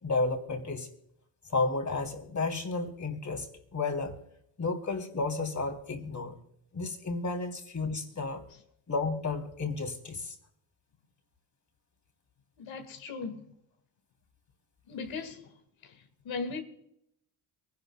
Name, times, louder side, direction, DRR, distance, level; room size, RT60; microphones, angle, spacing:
voice 1, 0.0-0.9 1.5-3.5 3.7-4.2 4.6-6.3 6.7-8.4 8.9-10.3, left 3 dB, 35° left, 3.1 m, -32 dB
voice 2, 12.6-13.4 14.9-15.5 15.8-16.6, left 4 dB, 70° left, 1.9 m, -38 dB
23.5 x 11.0 x 2.2 m
supercardioid pair, 60°, 47 cm